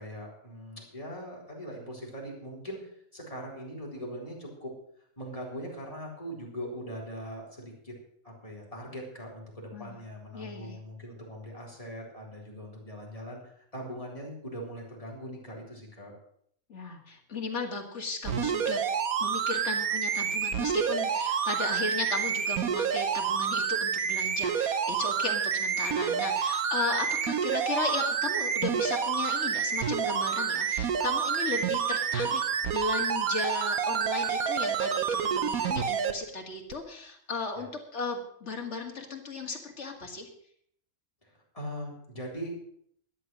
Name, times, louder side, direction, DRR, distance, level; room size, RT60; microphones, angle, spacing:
voice 1, 0.0-4.7 5.2-7.9 8.2-16.1 37.5-37.7 41.2-42.5, equal, 25° left, -2 dB, 4.1 m, -41 dB
voice 2, 10.3-10.8 16.7-18.8 19.2-40.3, left 3 dB, 55° left, 2 dB, 2.4 m, -35 dB
sound 1, 18.2-36.1 36.7-36.8, right 7 dB, 80° right, 1.4 m, -28 dB
13.0 x 10.0 x 6.3 m, 0.67 s
omnidirectional pair, 1.5 m